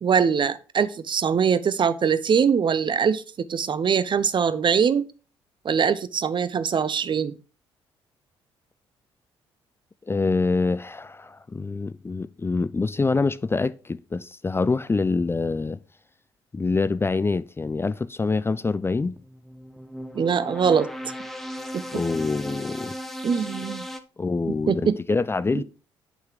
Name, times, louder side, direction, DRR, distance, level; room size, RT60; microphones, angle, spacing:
voice 1, 0.0-3.2 3.5-5.0 5.6-7.3 20.1-20.9 21.7-22.0 23.2-23.9 24.5-25.0 25.5-25.6, right 6 dB, 40° right, 0.7 m, -22 dB
voice 2, 10.1-15.8 16.5-19.2 21.9-23.0 24.2-25.6, left 3 dB, 20° left, 0.4 m, -25 dB
sound 1, 19.2-24.0, equal, ahead, 1.1 m, -36 dB
9.7 x 5.7 x 3.7 m
figure-of-eight pair, 45°, 13 cm